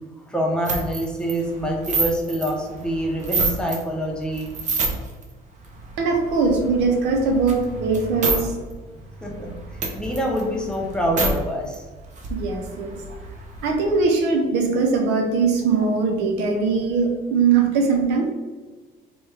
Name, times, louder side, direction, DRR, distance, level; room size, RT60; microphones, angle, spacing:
voice 1, 0.3-4.5 9.2-9.5 10.0-11.9, equal, 5° left, -1 dB, 0.7 m, -25 dB
sound 1, 0.7-3.8 4.2-5.2 5.6-8.4 8.7-8.8 9.1-11.3 11.7-11.8 12.0-14.0, right 3 dB, 45° right, 0.8 m, -28 dB
voice 2, 6.0-8.5 12.3-13.0 13.6-18.3, right 4 dB, 85° right, 3 dB, 0.7 m, -21 dB
4.2 x 2.3 x 3.3 m, 1.3 s
cardioid pair, 110°, 17 cm